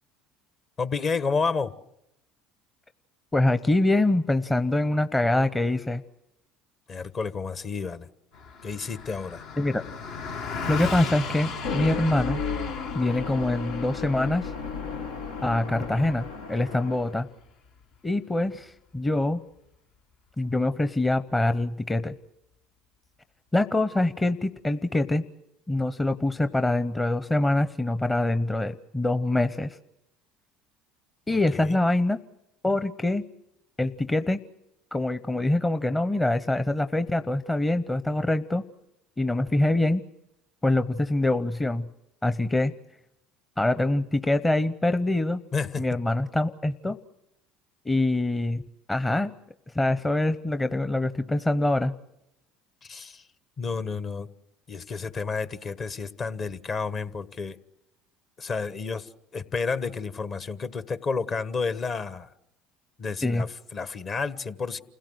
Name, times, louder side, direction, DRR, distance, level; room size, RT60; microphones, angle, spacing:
voice 1, 0.8-1.7 6.9-8.1 8.6-9.4 31.5-31.8 45.5-46.0 52.8-53.2 53.6-54.3 54.7-57.6 58.4-62.3 63.0-64.8, left 4 dB, 40° left, 1.3 m, -30 dB
voice 2, 3.3-6.0 9.6-9.8 10.7-12.4 12.9-14.5 15.4-17.3 18.0-19.4 20.4-22.1 23.5-25.2 25.7-29.8 31.3-32.2 32.6-33.2 33.8-34.4 34.9-38.6 39.2-40.0 40.6-41.9 42.2-42.7 43.6-45.4 45.8-47.0 47.8-48.6 48.9-49.3 49.7-51.9 63.2-63.4, left 2 dB, 15° left, 0.9 m, -24 dB
Car passing by, 8.3-17.9, left 5 dB, 70° left, 1.9 m, -37 dB
sound 1, 11.5-17.2, left 5 dB, 90° left, 1.6 m, -34 dB
29.0 x 16.5 x 8.0 m
hypercardioid pair, 75°, 0 cm